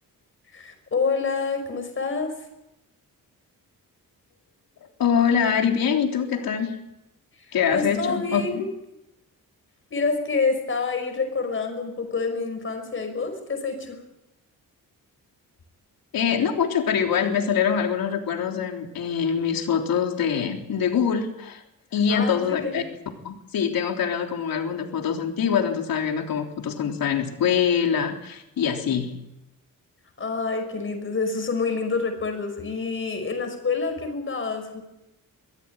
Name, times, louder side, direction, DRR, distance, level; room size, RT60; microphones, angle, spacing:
voice 1, 0.5-2.3 7.7-8.7 9.9-14.0 22.1-22.7 30.2-34.8, left 4 dB, 35° left, 5 dB, 5.6 m, -27 dB
voice 2, 5.0-6.8 7.5-8.6 16.1-21.6 21.9-22.8 23.2-29.2, left 7 dB, 80° left, 2 dB, 3.6 m, -24 dB
24.0 x 15.0 x 9.1 m, 0.92 s
wide cardioid pair, 170°, 35 cm